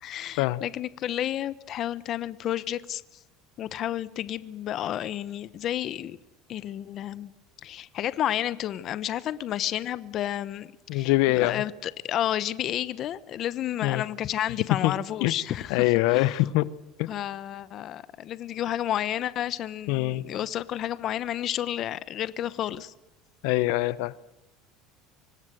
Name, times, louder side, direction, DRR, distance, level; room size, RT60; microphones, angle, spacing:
voice 1, 0.0-3.2 3.6-6.2 6.5-7.3 7.6-16.5 17.1-22.9, left 11 dB, 40° left, 0.9 m, -31 dB
voice 2, 10.9-11.6 13.8-14.0 14.8-14.9 15.2-15.3 15.7-16.7 17.0-17.1 19.9-20.2 23.4-24.2, left 18 dB, 70° left, 0.8 m, -23 dB
25.0 x 19.0 x 7.7 m
cardioid pair, 155°, 0 cm